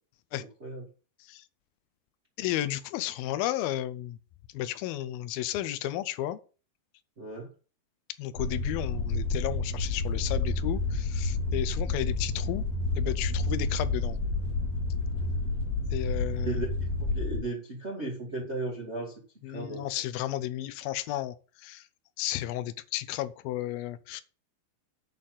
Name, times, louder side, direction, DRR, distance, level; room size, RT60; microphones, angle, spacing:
voice 1, 0.4-0.8 7.2-7.5 16.4-16.7 17.0-19.2 19.5-19.8, right 2 dB, 65° right, 0.6 m, -35 dB
voice 2, 2.4-4.2 4.5-6.4 8.2-12.6 13.0-14.2 15.9-16.6 19.4-21.8 22.2-24.2, left 13 dB, 80° left, 2.2 m, -33 dB
sound 1, 8.4-17.4, left 3 dB, 50° left, 2.6 m, -30 dB
10.0 x 4.2 x 7.5 m
omnidirectional pair, 5.0 m